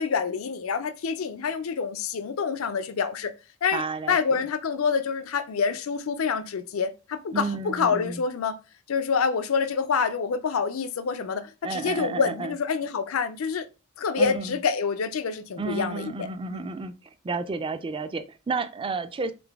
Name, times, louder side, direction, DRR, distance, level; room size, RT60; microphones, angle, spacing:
voice 1, 0.0-3.3 3.6-8.6 8.9-13.7 14.0-16.6, left 5 dB, 75° left, 0.4 m, -27 dB
voice 2, 3.7-4.4 7.3-8.2 11.6-12.5 14.2-14.6 15.6-16.9 17.2-19.3, right 4 dB, 25° right, 0.4 m, -31 dB
3.9 x 3.8 x 3.4 m
head